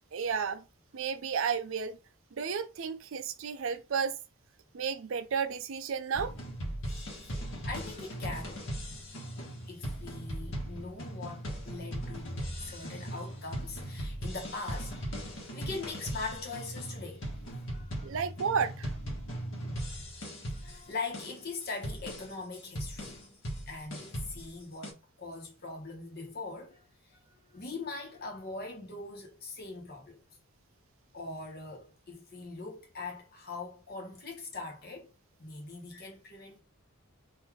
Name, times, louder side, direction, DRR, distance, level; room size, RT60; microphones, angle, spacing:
voice 1, 0.1-0.6 0.9-2.0 2.3-4.2 4.7-6.3 18.0-18.9, right 6 dB, 60° right, 0.4 m, -32 dB
sound 1, 6.1-24.9, equal, 65° left, 1.3 m, -39 dB
voice 2, 7.6-8.6 9.1-9.4 9.7-17.3 17.6-18.1 20.5-23.3 23.7-30.2 31.1-35.1 35.4-36.6, left 3 dB, 45° left, 1.2 m, -42 dB
3.9 x 2.7 x 3.0 m
head